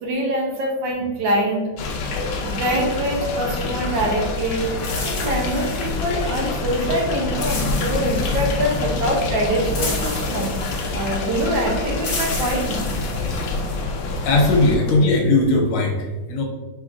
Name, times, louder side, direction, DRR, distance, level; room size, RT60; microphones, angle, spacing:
voice 1, 0.0-1.7 2.4-4.7 5.0-10.5 10.9-13.2 14.0-14.2, right 1 dB, 65° right, -1 dB, 1.4 m, -24 dB
sound 1, 1.8-14.8, left 3 dB, 65° left, 1.2 m, -26 dB
sound 2, 4.6-14.9, left 3 dB, 50° left, 1.4 m, -33 dB
voice 2, 14.2-16.4, left 2 dB, 85° left, 0 dB, 1.8 m, -18 dB
5.1 x 3.8 x 2.5 m, 1.3 s
omnidirectional pair, 2.4 m